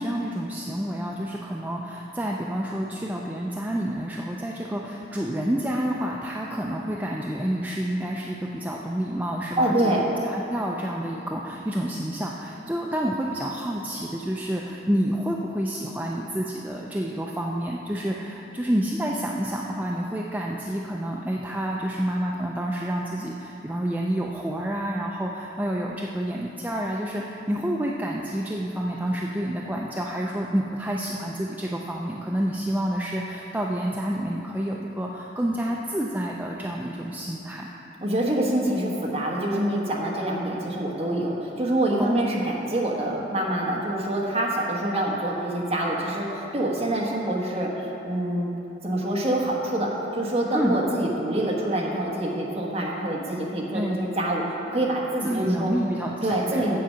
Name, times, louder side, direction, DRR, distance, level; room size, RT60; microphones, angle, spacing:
voice 1, 0.0-37.7 42.0-42.5 50.5-50.8 53.7-54.1 55.2-56.7, right 1 dB, 10° right, -2 dB, 0.4 m, -29 dB
voice 2, 9.6-10.0 38.0-47.7 48.0-54.4 54.7-55.7 56.2-56.8, right 1 dB, 35° right, -3 dB, 1.2 m, -26 dB
7.6 x 7.6 x 5.6 m, 3.0 s
head